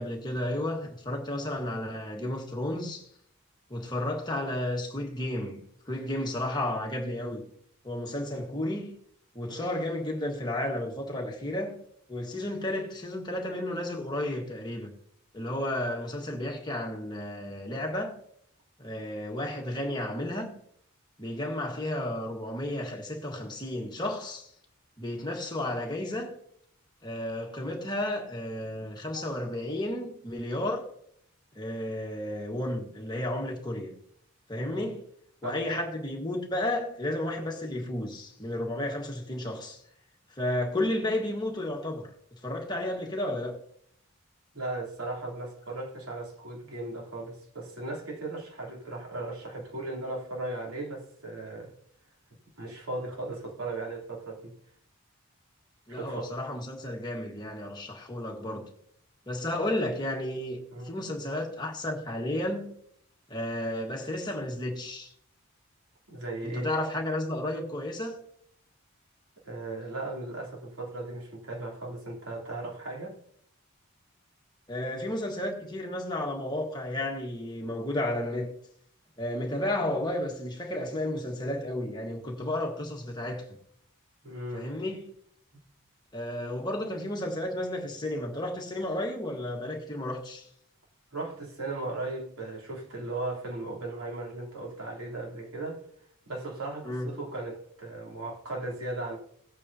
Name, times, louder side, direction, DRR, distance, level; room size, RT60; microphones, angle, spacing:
voice 1, 0.0-3.1 3.7-7.4 7.8-8.9 9.3-11.8 12.1-14.9 15.3-18.1 18.8-20.5 21.2-24.5 25.0-26.4 27.0-30.9 31.5-33.9 34.5-35.0 35.4-39.8 40.3-42.1 42.4-43.6 55.9-58.7 59.3-60.6 60.8-62.7 63.3-65.1 66.4-68.2 74.7-78.5 79.2-83.5 84.5-85.1 86.1-90.5 96.8-97.1, left 1 dB, 20° left, 1.5 m, -32 dB
voice 2, 34.5-34.9 35.4-35.6 44.5-51.7 52.6-54.5 55.9-56.3 60.7-60.9 66.1-66.7 69.4-73.2 84.2-84.7 85.5-85.6 91.1-95.8 96.3-99.2, right 2 dB, 80° right, 3.3 m, -37 dB
17.5 x 8.7 x 2.8 m
head